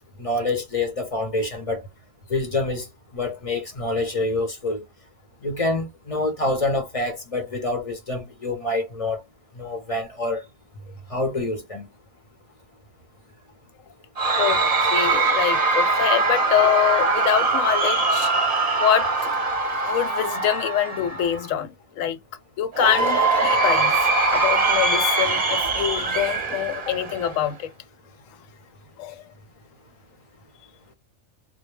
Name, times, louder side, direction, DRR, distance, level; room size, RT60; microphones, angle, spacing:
voice 1, 0.2-1.8 2.3-2.9 3.1-4.8 5.4-9.2 9.6-10.4 11.1-11.9, left 2 dB, 35° left, 0.6 m, -26 dB
Cheering / Crowd, 14.2-21.5 22.7-27.5, right 3 dB, 35° right, 0.6 m, -22 dB
voice 2, 14.3-18.3 18.8-19.4 19.8-22.2 22.6-27.7 29.0-29.2, left 10 dB, 80° left, 1.0 m, -25 dB
2.2 x 2.1 x 3.1 m
omnidirectional pair, 1.4 m